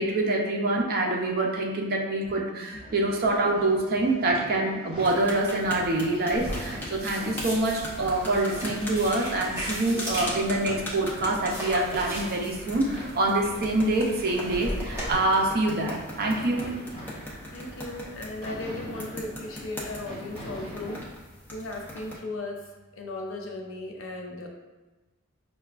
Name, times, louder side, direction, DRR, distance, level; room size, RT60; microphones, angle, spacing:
voice 1, 0.0-16.6, right 2 dB, 45° right, 0 dB, 0.5 m, -26 dB
sound 1, 2.7-21.0, equal, 25° left, 1.5 m, -43 dB
sound 2, 5.0-22.2, equal, 10° left, 0.6 m, -41 dB
sound 3, 6.4-15.1, equal, 15° right, 1.2 m, -38 dB
voice 2, 17.5-21.0 21.5-22.6 22.9-24.5, left 2 dB, 65° left, 1 dB, 0.6 m, -36 dB
5.7 x 2.3 x 2.3 m, 1.2 s
head